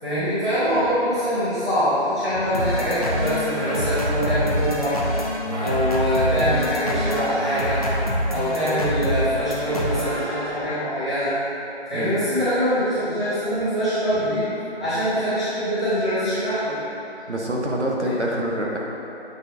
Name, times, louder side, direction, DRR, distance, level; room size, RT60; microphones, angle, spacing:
voice 1, 0.0-4.9 5.6-7.8 8.2-11.3 11.9-14.4 14.8-16.8 18.0-18.1, equal, 5° left, -22 dB, 1.1 m, -23 dB
sound 1, 2.5-10.8, equal, 35° left, 0.6 m, -26 dB
voice 2, 17.3-18.8, right 1 dB, 90° right, -3 dB, 1.3 m, -25 dB
8.6 x 4.0 x 3.6 m, 2.9 s
figure-of-eight pair, 165°, 33 cm